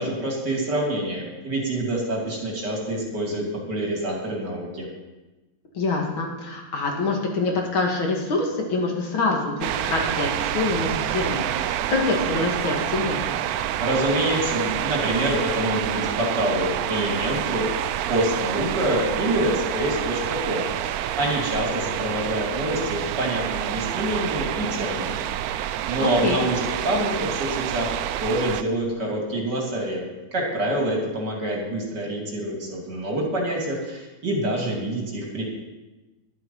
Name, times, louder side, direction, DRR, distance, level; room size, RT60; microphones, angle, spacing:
voice 1, 0.0-4.9 13.8-17.8 18.1-26.6 26.8-35.4, right 1 dB, 55° right, -2 dB, 3.6 m, -26 dB
voice 2, 5.7-13.3 26.0-26.4, left 3 dB, 90° left, 0 dB, 2.9 m, -25 dB
sound 1, 9.6-28.6, right 11 dB, 90° right, 0.8 m, -28 dB
11.5 x 11.5 x 5.6 m, 1.1 s
omnidirectional pair, 2.1 m